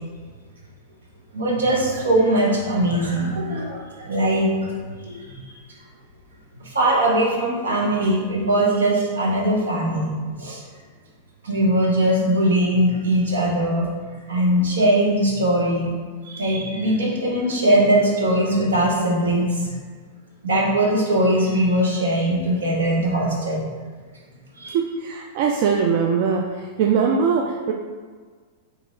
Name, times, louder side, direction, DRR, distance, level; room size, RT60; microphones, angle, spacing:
voice 1, 1.3-4.7 5.0-5.4 6.6-10.6 11.4-13.8 14.3-15.9 16.2-19.7 20.4-23.6 24.6-24.8, right 1 dB, 85° right, -2 dB, 0.9 m, -20 dB
voice 2, 24.7-26.5 26.8-27.7, right 6 dB, 55° right, 1 dB, 0.3 m, -21 dB
3.0 x 2.9 x 3.7 m, 1.5 s
hypercardioid pair, 105°, 0 cm